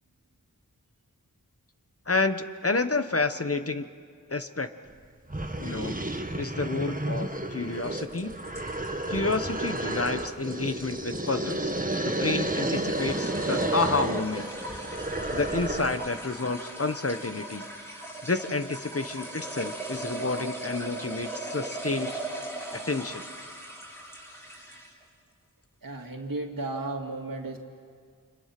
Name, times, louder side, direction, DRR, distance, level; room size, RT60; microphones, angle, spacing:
voice 1, 2.1-3.9 4.3-4.7 5.6-6.0 6.4-8.3 9.1-11.7 12.0-14.5 14.8-14.9 15.3-17.7 18.2-22.1 22.7-23.2, left 3 dB, 45° left, 9 dB, 1.1 m, -29 dB
sound 1, 4.9-5.0 5.3-16.1, right 1 dB, 25° right, 1.5 m, -31 dB
sound 2, 7.8-25.0, right 1 dB, 5° left, 4.7 m, -39 dB
voice 2, 25.8-27.6, right 2 dB, 80° right, 3 dB, 2.3 m, -34 dB
29.5 x 26.0 x 6.0 m, 2.1 s
wide cardioid pair, 45°, 33 cm